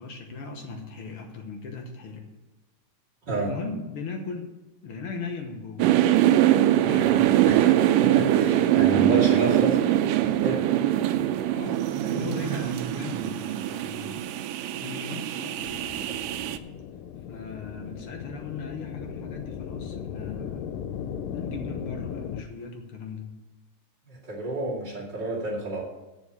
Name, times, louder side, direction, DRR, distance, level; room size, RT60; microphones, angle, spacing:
voice 1, 0.0-2.3 3.4-4.5 4.8-6.0 6.6-7.5 8.9-9.3 11.5-14.3 14.5-15.7 17.3-20.8 21.3-23.4, left 4 dB, 60° left, 3 dB, 1.5 m, -38 dB
sound 1, 5.8-16.6, right 12 dB, 90° right, 2.2 m, -23 dB
voice 2, 7.5-9.8 10.2-10.6 24.0-25.8, right 2 dB, 35° right, -6 dB, 2.7 m, -30 dB
sound 2, 15.6-22.4, left 8 dB, 90° left, 2.3 m, -37 dB
8.4 x 7.3 x 8.3 m, 1.1 s
omnidirectional pair, 3.8 m